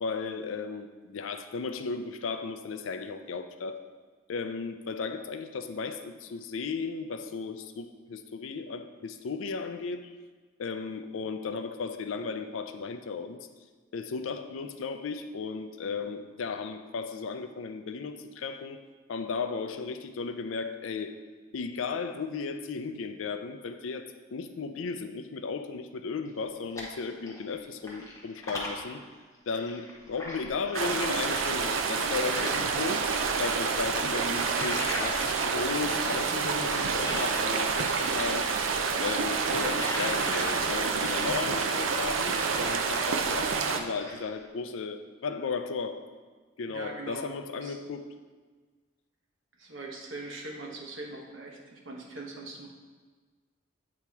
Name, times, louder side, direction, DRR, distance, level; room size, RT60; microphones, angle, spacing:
voice 1, 0.0-3.8 4.3-10.2 10.6-13.4 13.9-18.8 19.1-21.1 21.5-24.1 24.3-29.0 29.5-33.0 33.4-38.5 39.0-46.0 46.6-48.1, left 4 dB, 85° left, 8 dB, 0.4 m, -35 dB
sound 1, 26.3-27.5 27.8-32.7 33.0-37.9 38.2-43.3 43.6-44.4, left 1 dB, 15° left, 1.0 m, -41 dB
sound 2, 30.7-43.8, right 5 dB, 85° right, 0.5 m, -28 dB
voice 2, 46.7-47.3 47.6-47.8 49.6-52.7, right 2 dB, 70° right, 0 dB, 1.0 m, -41 dB
8.6 x 2.9 x 4.6 m, 1.4 s
head